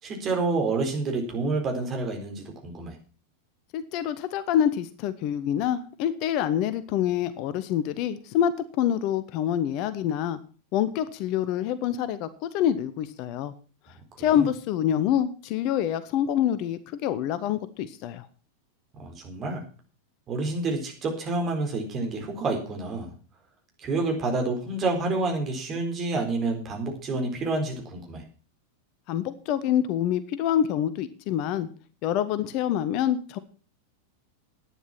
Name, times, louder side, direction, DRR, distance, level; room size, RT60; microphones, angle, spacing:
voice 1, 0.0-3.0 14.3-14.5 19.0-19.6 20.3-23.1 23.8-28.2, right 3 dB, 30° right, 2 dB, 4.3 m, -28 dB
voice 2, 3.7-10.4 10.7-13.5 14.2-18.3 29.1-31.7 32.0-33.4, left 10 dB, 40° left, 14 dB, 0.9 m, -26 dB
11.0 x 9.6 x 5.9 m, 0.38 s
figure-of-eight pair, 90°, 0 cm